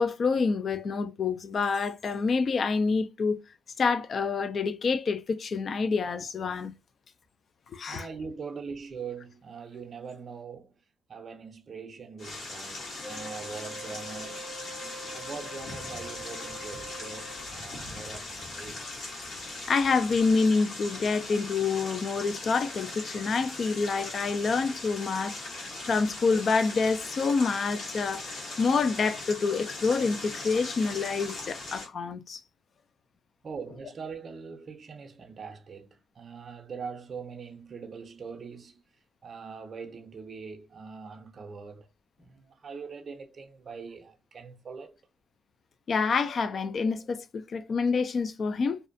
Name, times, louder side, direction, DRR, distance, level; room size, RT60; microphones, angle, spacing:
voice 1, 0.0-3.4 3.8-6.7 7.7-8.1 19.4-32.4 45.9-48.8, left 4 dB, 50° left, 0.3 m, -27 dB
voice 2, 7.9-10.8 11.1-14.5 15.1-18.9 33.4-38.8 39.2-41.9 42.2-45.0, right 5 dB, 45° right, 0.5 m, -42 dB
sound 1, 12.2-31.9, left 2 dB, 65° left, 1.3 m, -40 dB
Wind instrument woodwind instrument, 13.0-17.8, right 2 dB, 20° left, 0.8 m, -44 dB
2.5 x 2.1 x 2.5 m
cardioid pair, 90°, 0 cm